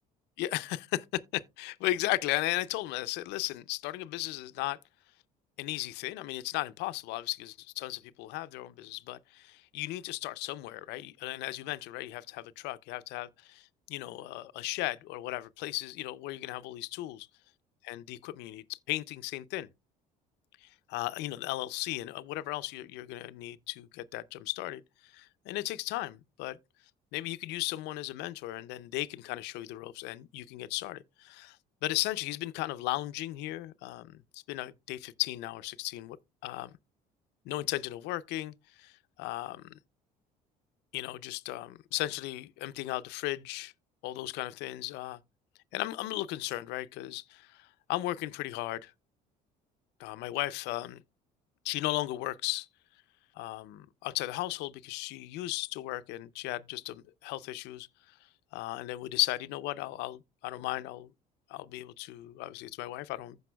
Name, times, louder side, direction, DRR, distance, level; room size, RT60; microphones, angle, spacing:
voice 1, 0.4-4.8 5.6-17.3 17.8-19.7 20.6-26.6 27.1-31.6 31.8-36.2 36.4-36.7 37.4-39.8 40.9-43.7 44.0-45.2 45.7-48.9 50.0-51.0 51.6-52.7 53.4-57.9 58.5-61.1 61.5-63.4, left 17 dB, 75° left, 0.5 m, -36 dB
15.0 x 5.3 x 2.3 m
supercardioid pair, 85°, 18 cm